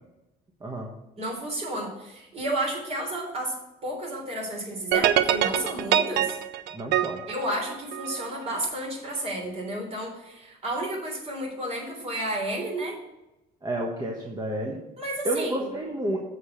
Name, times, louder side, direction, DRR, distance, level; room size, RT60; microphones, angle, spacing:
voice 1, 1.2-3.6 3.8-6.4 7.3-13.0 15.0-15.7, right 1 dB, 40° right, 0 dB, 3.5 m, -31 dB
sound 1, 4.9-8.3, right 11 dB, 80° right, 0.5 m, -24 dB
voice 2, 6.7-7.2 13.6-14.8 15.2-16.2, right 1 dB, 25° right, -1 dB, 1.3 m, -30 dB
7.2 x 5.0 x 7.1 m, 0.96 s
cardioid pair, 110°, 17 cm